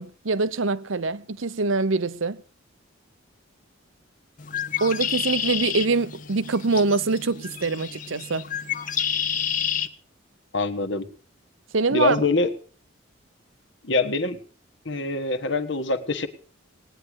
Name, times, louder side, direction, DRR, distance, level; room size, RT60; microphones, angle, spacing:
voice 1, 0.0-2.4 4.8-8.4 11.7-12.2, right 3 dB, 70° right, 0.8 m, -24 dB
Bird, 4.4-9.9, left 8 dB, 40° left, 0.9 m, -29 dB
voice 2, 10.5-11.1 11.9-12.5 13.8-14.4 14.8-16.3, left 3 dB, 60° left, 1.4 m, -24 dB
19.5 x 10.0 x 6.4 m
head